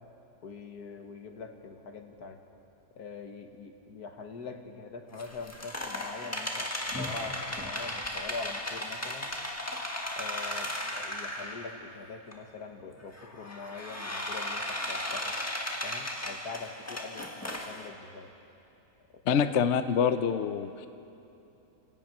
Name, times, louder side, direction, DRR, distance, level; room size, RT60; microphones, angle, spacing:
voice 1, 0.4-2.4 3.0-6.7 7.0-9.3 10.2-15.4 15.8-18.3 19.3-19.4, left 4 dB, 80° left, 4 dB, 2.0 m, -43 dB
sound 1, 5.1-11.9 12.3-12.4 13.1-17.9, left 1 dB, 10° left, 1.4 m, -36 dB
voice 2, 19.3-20.9, left 7 dB, 55° left, 10 dB, 0.9 m, -26 dB
28.0 x 18.0 x 6.0 m, 2.9 s
omnidirectional pair, 1.6 m